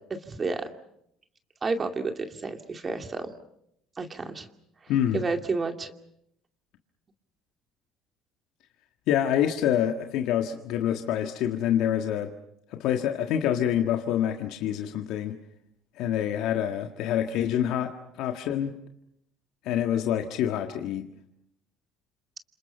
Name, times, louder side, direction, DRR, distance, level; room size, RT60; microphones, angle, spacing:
voice 1, 0.1-0.7 1.6-3.3 4.0-4.5 4.8-5.9, right 4 dB, 30° right, 5 dB, 2.5 m, -31 dB
voice 2, 9.1-12.3 12.7-15.4 16.0-18.7 19.6-21.1, left 10 dB, 70° left, 5 dB, 1.6 m, -26 dB
29.5 x 26.5 x 5.6 m, 0.76 s
supercardioid pair, 80°, 0 cm